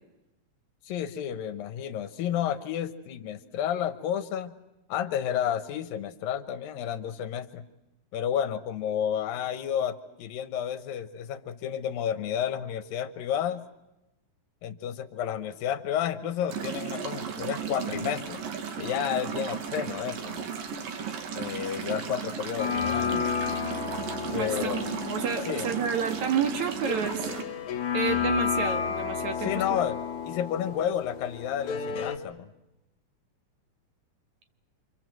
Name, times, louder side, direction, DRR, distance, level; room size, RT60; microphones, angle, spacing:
voice 1, 0.9-4.5 4.9-7.6 8.1-13.6 14.6-18.4 18.8-20.5 21.3-23.2 24.3-24.8 25.5-25.7 29.4-30.0 30.2-32.5, left 9 dB, 85° left, 11 dB, 2.9 m, -31 dB
sound 1, 16.5-27.4, right 7 dB, 80° right, 3.8 m, -35 dB
sound 2, 22.6-32.2, left 6 dB, 60° left, 3.1 m, -32 dB
voice 2, 24.3-27.3 27.9-29.5, right 7 dB, 60° right, 6 dB, 3.1 m, -30 dB
28.5 x 25.5 x 7.8 m, 0.96 s
omnidirectional pair, 4.0 m